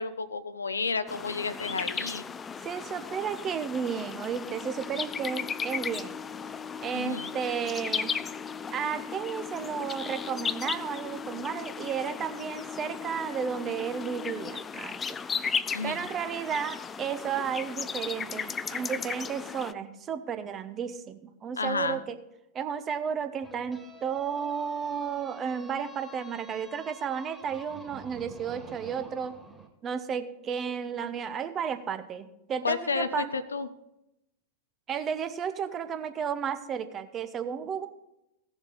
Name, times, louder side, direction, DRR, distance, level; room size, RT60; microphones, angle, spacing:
voice 1, 0.0-2.3 6.9-7.3 15.7-16.1 21.6-22.0 32.6-33.7, left 4 dB, 75° left, 14 dB, 0.5 m, -31 dB
sound 1, 1.1-19.7, left 6 dB, 20° left, 0.4 m, -36 dB
voice 2, 2.6-6.2 6.8-8.1 8.7-15.2 15.8-22.2 22.5-29.4 29.8-33.3 34.9-37.9, right 7 dB, 25° right, 10 dB, 0.8 m, -33 dB
Organ, 4.3-15.2, left 7 dB, 50° left, 1.0 m, -44 dB
sound 2, 23.4-29.7, right 1 dB, 5° right, 2.1 m, -48 dB
16.0 x 7.1 x 4.1 m, 0.86 s
figure-of-eight pair, 90°, 0 cm